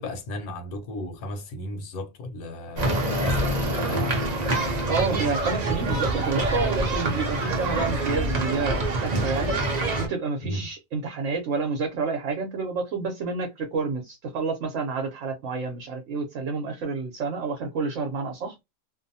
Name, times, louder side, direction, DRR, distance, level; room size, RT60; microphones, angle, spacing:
voice 1, 0.0-4.6 10.4-10.7, left 1 dB, 75° left, 1.1 m, -35 dB
sound 1, 2.8-10.1, right 2 dB, 85° right, 0.3 m, -26 dB
voice 2, 4.9-9.6 10.0-18.6, right 4 dB, 60° right, 0.9 m, -29 dB
2.6 x 2.1 x 2.6 m
omnidirectional pair, 1.6 m